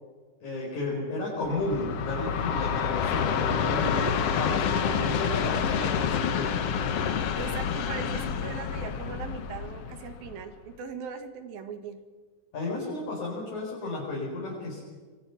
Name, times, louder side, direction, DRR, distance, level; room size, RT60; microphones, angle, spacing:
voice 1, 0.4-4.0 4.4-6.7 12.5-14.8, left 2 dB, 50° left, -3 dB, 6.0 m, -32 dB
Train, 1.4-10.6, left 7 dB, 75° left, 1.4 m, -28 dB
voice 2, 3.7-4.2 7.3-12.0, right 6 dB, 70° right, 7 dB, 3.6 m, -39 dB
26.5 x 23.5 x 5.9 m, 1.5 s
omnidirectional pair, 4.4 m